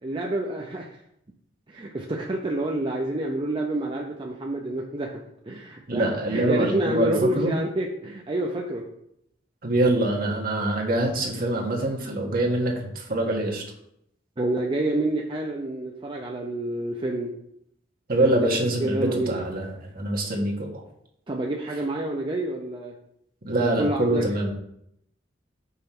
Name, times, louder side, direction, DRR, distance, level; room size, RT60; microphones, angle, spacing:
voice 1, 0.0-0.9 1.7-6.0 6.3-8.8 14.4-17.3 18.2-18.4 18.8-19.4 21.3-22.9 23.5-24.2, right 1 dB, 25° right, 0 dB, 0.6 m, -28 dB
voice 2, 5.9-7.5 9.6-13.6 18.1-20.8 23.4-24.5, right 1 dB, 50° right, -1 dB, 1.5 m, -24 dB
5.6 x 4.3 x 5.9 m, 0.76 s
head